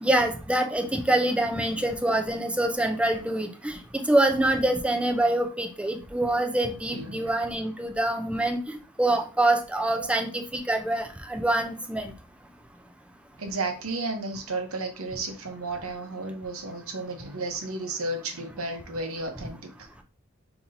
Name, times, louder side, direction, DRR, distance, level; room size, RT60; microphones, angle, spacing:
voice 1, 0.0-12.1, right 1 dB, 5° right, 4 dB, 0.5 m, -25 dB
voice 2, 6.9-7.3 9.9-10.1 13.4-19.9, right 2 dB, 70° right, 4 dB, 0.9 m, -33 dB
5.4 x 2.9 x 2.6 m, 0.33 s
head